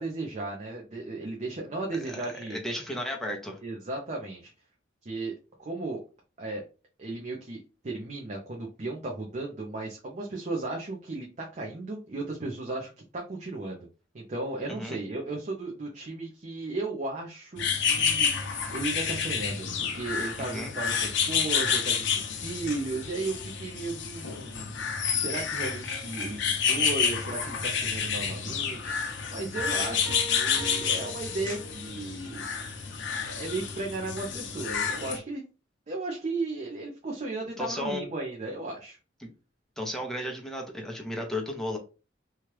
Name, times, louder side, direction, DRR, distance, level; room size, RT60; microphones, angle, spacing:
voice 1, 0.0-2.6 3.6-4.5 5.0-5.3 5.6-6.0 6.4-6.6 7.0-13.9 14.1-32.5 33.3-35.4 35.9-39.0, right 2 dB, 40° right, -1 dB, 0.6 m, -35 dB
voice 2, 1.9-3.6 14.7-15.0 20.4-20.7 37.6-38.1 39.2-39.3 39.8-41.8, left 1 dB, ahead, 0 dB, 0.7 m, -34 dB
sound 1, 17.6-35.2, left 6 dB, 65° left, 0.6 m, -29 dB
sound 2, 29.6-32.1, right 4 dB, 55° right, 1.0 m, -41 dB
2.9 x 2.3 x 3.1 m, 0.32 s
head